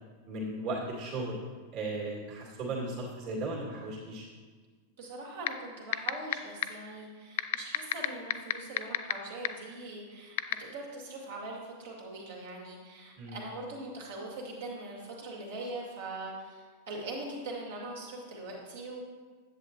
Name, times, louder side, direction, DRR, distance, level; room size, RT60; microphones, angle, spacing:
voice 1, 0.3-1.4 1.7-4.3 13.2-13.4, right 2 dB, 40° right, -3 dB, 2.3 m, -36 dB
voice 2, 5.0-19.0, right 2 dB, 60° right, -3 dB, 2.2 m, -42 dB
sound 1, 5.5-5.6 5.9-6.3 6.6-6.7 7.4-9.1 9.4-9.5 10.4-10.5, left 17 dB, 55° left, 0.4 m, -25 dB
10.0 x 8.2 x 3.0 m, 1.5 s
figure-of-eight pair, 90°, 0 cm